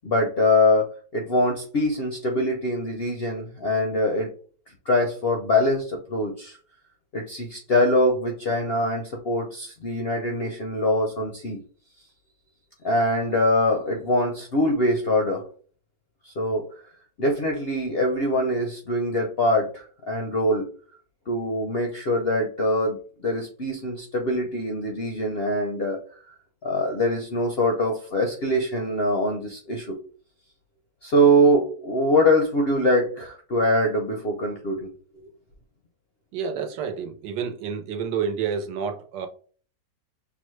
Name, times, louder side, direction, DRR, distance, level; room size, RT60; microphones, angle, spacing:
voice 1, 0.0-4.3 4.9-6.6 7.1-11.6 12.8-15.4 16.2-16.7 17.2-20.7 21.3-26.0 26.6-30.0 31.0-34.9, left 1 dB, 65° left, 0.6 m, -23 dB
voice 2, 36.3-39.3, right 6 dB, 85° right, 1.4 m, -29 dB
6.0 x 2.1 x 3.1 m
omnidirectional pair, 1.8 m